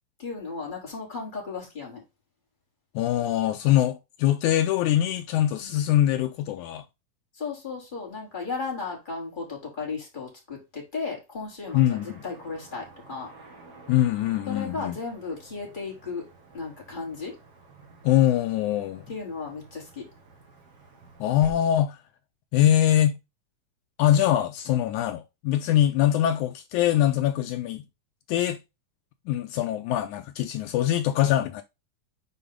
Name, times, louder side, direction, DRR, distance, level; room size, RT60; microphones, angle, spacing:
voice 1, 0.2-2.0 5.6-5.8 7.3-13.3 14.5-16.3 16.5-17.3 19.1-20.1, left 4 dB, 15° left, 3.4 m, -35 dB
voice 2, 3.0-6.8 11.7-12.2 13.9-15.0 18.0-19.1 21.2-22.0 22.5-23.2 24.0-27.8 28.3-28.6 29.3-31.6, left 12 dB, 85° left, 1.7 m, -23 dB
Car passing by / Traffic noise roadway noise, 11.6-21.5, right 3 dB, 40° right, 1.5 m, -50 dB
6.8 x 4.7 x 3.7 m
omnidirectional pair, 3.9 m